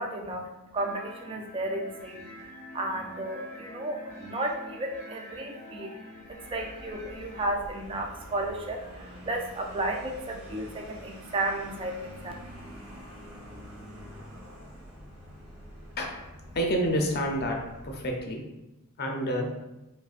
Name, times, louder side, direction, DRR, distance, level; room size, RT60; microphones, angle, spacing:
voice 1, 0.0-12.3, right 1 dB, 25° right, 2 dB, 0.3 m, -33 dB
sound 1, 0.8-7.4, left 1 dB, 10° left, 0.7 m, -46 dB
Vehicle, 6.2-18.4, equal, 55° right, 1.0 m, -46 dB
voice 2, 16.5-17.6 17.8-18.4 19.0-19.5, equal, 45° left, 1 dB, 0.6 m, -28 dB
4.9 x 2.2 x 2.4 m, 0.98 s
head